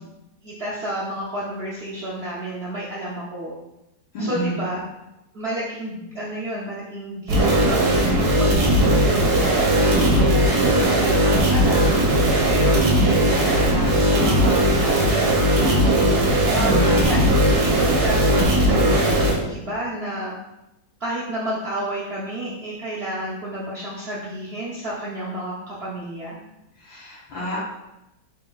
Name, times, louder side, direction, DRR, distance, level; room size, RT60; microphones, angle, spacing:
voice 1, 0.4-3.5 4.2-4.8 5.3-10.5 10.9-12.0 12.5-20.4 21.0-26.4, right 1 dB, 85° right, -7 dB, 0.5 m, -31 dB
voice 2, 4.1-4.6 16.6-17.0 26.8-27.6, equal, 80° left, -9 dB, 1.7 m, -29 dB
sound 1, 7.3-19.3, right 1 dB, 60° right, 1.4 m, -18 dB
4.2 x 3.8 x 2.3 m, 0.92 s
omnidirectional pair, 2.0 m